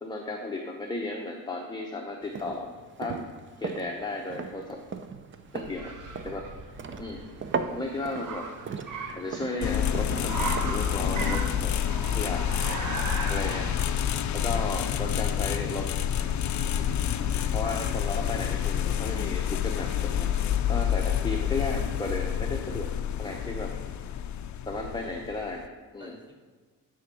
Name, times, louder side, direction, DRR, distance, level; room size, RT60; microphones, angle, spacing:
voice 1, 0.0-2.7 3.0-3.2 3.6-4.8 5.5-5.9 6.2-6.4 7.0-7.2 7.7-8.5 9.1-11.7 12.1-12.4 13.3-13.7 14.3-15.9 16.7-16.9 17.5-20.3 20.7-22.9 23.2-23.7 24.7-25.7 25.9-26.2, left 2 dB, 10° left, 0 dB, 0.7 m, -34 dB
sound 1, 2.2-11.8, right 5 dB, 35° right, 0.5 m, -38 dB
Car, 4.6-17.5, right 4 dB, 60° right, 1.1 m, -39 dB
sound 2, 9.6-25.7, left 9 dB, 55° left, 0.5 m, -28 dB
voice 2, 26.0-26.3, equal, 15° right, -1 dB, 2.1 m, -51 dB
10.5 x 3.5 x 6.1 m, 1.5 s
cardioid pair, 125°, 36 cm